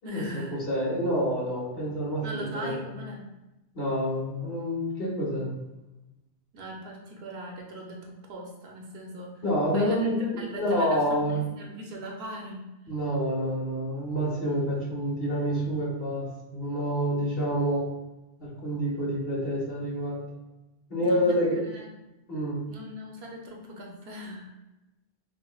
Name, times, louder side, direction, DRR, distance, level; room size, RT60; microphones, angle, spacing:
voice 1, 0.0-0.6 2.2-3.3 6.5-9.4 9.7-12.7 21.0-21.9 22.7-24.5, equal, 70° right, 0 dB, 0.9 m, -40 dB
voice 2, 0.7-2.8 3.7-5.5 9.4-11.4 12.9-17.8 18.4-20.2 20.9-21.6 22.3-22.6, equal, 60° left, -6 dB, 1.4 m, -28 dB
4.6 x 2.1 x 2.2 m, 0.98 s
omnidirectional pair, 1.1 m